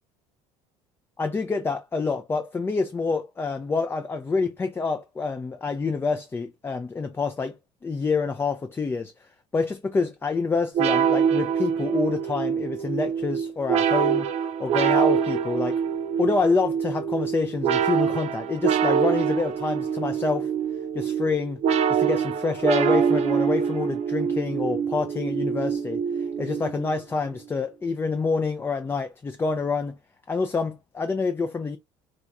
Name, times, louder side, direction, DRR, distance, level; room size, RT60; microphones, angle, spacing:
voice 1, 1.2-7.6 7.8-9.1 9.5-14.3 14.6-15.8 16.2-20.5 20.9-21.6 21.9-30.0 30.3-31.8, left 4 dB, 15° left, 0.3 m, -27 dB
sound 1, 10.7-27.0, right 7 dB, 50° right, 0.6 m, -25 dB
2.4 x 2.3 x 4.0 m
supercardioid pair, 95°, 14 cm